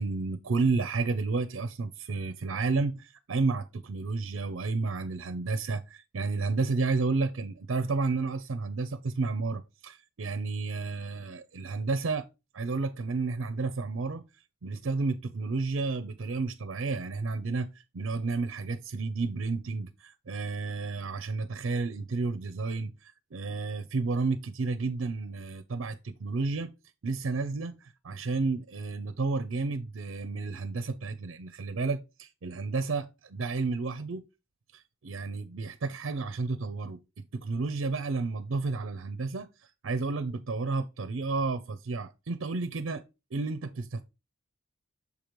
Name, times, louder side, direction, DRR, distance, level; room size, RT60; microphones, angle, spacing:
voice 1, 0.0-12.3 12.5-14.2 14.6-26.7 27.0-34.2 34.7-43.0 43.3-44.0, right 3 dB, 65° right, 0.5 m, -31 dB
6.9 x 5.1 x 3.0 m
head